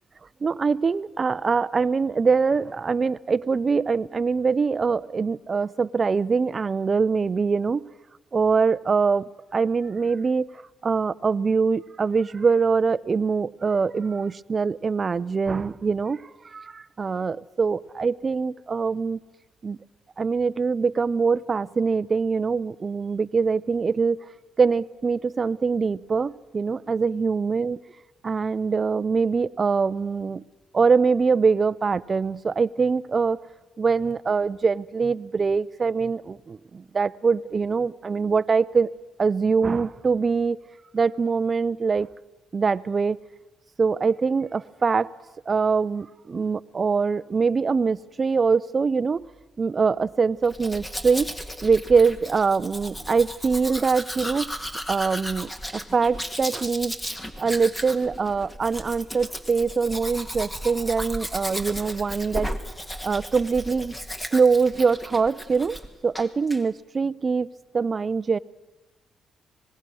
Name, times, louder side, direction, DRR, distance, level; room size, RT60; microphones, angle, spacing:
voice 1, 0.4-7.8 8.3-10.5 10.8-19.2 19.6-19.8 20.2-24.2 24.6-27.8 28.2-30.4 30.7-33.4 33.8-38.9 39.2-40.6 40.9-42.1 42.5-43.2 43.8-45.1 45.5-49.3 49.6-51.3 51.6-54.5 54.9-56.9 57.4-62.5 63.0-63.9 64.3-67.5 67.7-68.4, right 5 dB, 35° right, 16 dB, 0.6 m, -23 dB
Domestic sounds home sounds, 50.4-65.9 66.1-66.6, equal, 15° left, 2.0 m, -35 dB
25.5 x 20.0 x 6.3 m, 1.1 s
cardioid pair, 90°, 0 cm